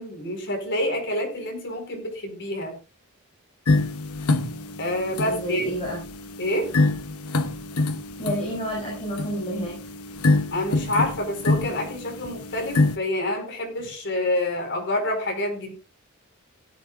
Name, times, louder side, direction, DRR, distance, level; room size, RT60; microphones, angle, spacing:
voice 1, 0.0-2.7 4.8-5.7 6.4-6.7 10.5-15.7, left 1 dB, 55° left, 3 dB, 4.6 m, -27 dB
sound 1, 3.7-13.0, left 2 dB, 90° left, 0.9 m, -26 dB
voice 2, 5.2-6.0 8.2-9.8, equal, 30° left, -3 dB, 6.9 m, -29 dB
17.0 x 12.5 x 2.5 m, 0.32 s
head